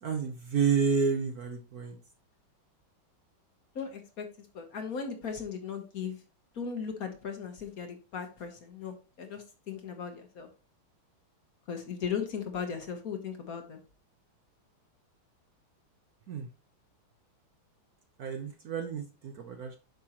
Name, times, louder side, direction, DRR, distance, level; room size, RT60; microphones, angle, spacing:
voice 1, 0.0-2.0 16.3-16.5 18.2-19.8, right 6 dB, 60° right, 6 dB, 1.0 m, -30 dB
voice 2, 3.7-6.2 6.5-10.5 11.7-13.8, left 6 dB, 50° left, 6 dB, 1.2 m, -37 dB
8.7 x 5.9 x 2.9 m, 0.33 s
omnidirectional pair, 2.2 m